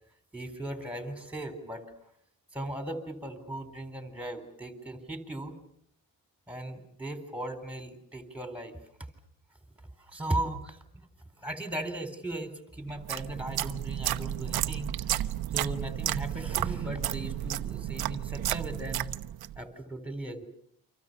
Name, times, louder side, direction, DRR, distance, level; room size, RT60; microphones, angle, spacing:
voice 1, 0.3-1.9 2.5-5.5 6.5-8.8 10.0-11.1 11.4-15.1 15.5-19.1 19.6-20.4, right 1 dB, 5° right, 8 dB, 3.9 m, -37 dB
sound 1, 12.9-19.6, right 13 dB, 85° right, 1.0 m, -32 dB
29.5 x 26.0 x 6.8 m, 0.67 s
cardioid pair, 140°, 36 cm